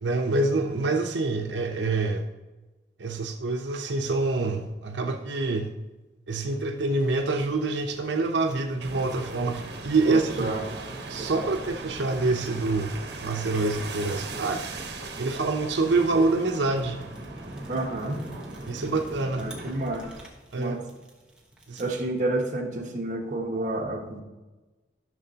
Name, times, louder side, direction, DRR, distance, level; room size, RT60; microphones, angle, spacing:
voice 1, 0.0-2.3 3.0-5.7 6.3-10.5 11.1-12.9 13.2-14.6 15.2-17.0 18.7-19.5 20.5-20.8 21.7-21.9, right 3 dB, 90° right, 3 dB, 0.7 m, -26 dB
Fire, 6.9-22.1, right 1 dB, 5° right, 1.1 m, -45 dB
sound 1, 8.8-20.3, right 3 dB, 70° right, 1.0 m, -40 dB
voice 2, 10.0-10.8 11.2-11.5 17.7-18.2 19.4-20.1 20.6-20.8 21.8-24.2, right 2 dB, 45° right, 0 dB, 1.2 m, -30 dB
12.5 x 6.3 x 2.9 m, 1.2 s
head